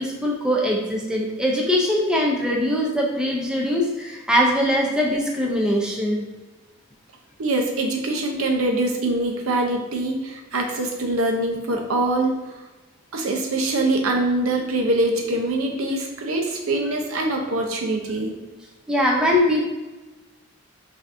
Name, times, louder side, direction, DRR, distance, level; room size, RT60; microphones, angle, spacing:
voice 1, 0.0-6.2 18.9-19.7, equal, 5° right, -2 dB, 0.5 m, -22 dB
voice 2, 7.4-12.4 13.1-18.3, right 2 dB, 80° right, 2 dB, 0.7 m, -23 dB
5.6 x 2.7 x 2.5 m, 1.2 s
head